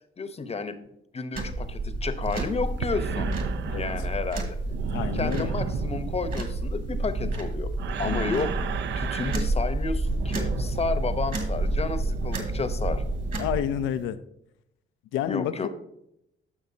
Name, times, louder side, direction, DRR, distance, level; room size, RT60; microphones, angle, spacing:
voice 1, 0.2-0.8 1.1-3.3 3.7-4.6 5.1-7.7 8.0-8.5 9.0-13.0 15.3-15.7, left 4 dB, 30° left, 11 dB, 0.8 m, -31 dB
sound 1, 1.3-13.6, right 2 dB, 45° right, 1.9 m, -30 dB
sound 2, 2.2-14.0, right 7 dB, 65° right, 0.6 m, -35 dB
voice 2, 4.9-5.5 8.0-8.4 13.4-14.2 15.1-15.7, left 10 dB, 90° left, 12 dB, 0.5 m, -29 dB
12.0 x 6.1 x 2.7 m, 0.79 s
cardioid pair, 90°, 20 cm